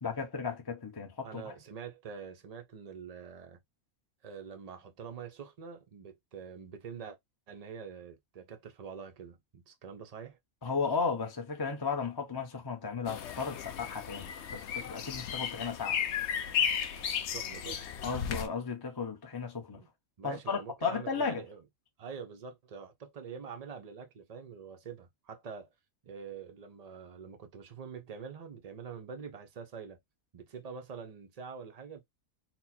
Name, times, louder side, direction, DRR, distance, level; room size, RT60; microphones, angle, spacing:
voice 1, 0.0-1.4 10.6-16.0 18.0-19.8 20.2-21.4, left 5 dB, 30° left, 0.4 m, -35 dB
voice 2, 1.2-3.6 4.2-7.2 7.5-10.4 17.2-17.9 19.7-19.9 20.2-21.6 22.0-25.7 26.0-30.0 30.3-32.1, right 6 dB, 55° right, 0.4 m, -45 dB
sound 1, 13.1-18.5, left 8 dB, 65° left, 0.8 m, -34 dB
4.3 x 2.1 x 4.2 m
omnidirectional pair, 1.5 m